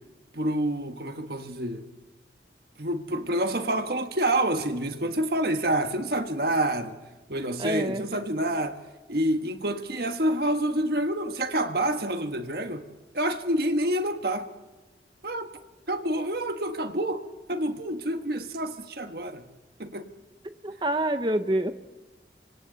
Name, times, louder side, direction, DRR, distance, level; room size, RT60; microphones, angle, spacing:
voice 1, 0.3-1.8 2.8-7.0 7.3-8.8 9.1-12.9 13.1-14.5 15.2-15.5 15.9-17.2 17.5-19.4 19.8-20.1, right 1 dB, 55° right, 1.5 m, -28 dB
voice 2, 7.6-8.0 20.6-21.7, right 1 dB, 25° right, 0.8 m, -26 dB
28.0 x 25.0 x 4.0 m
head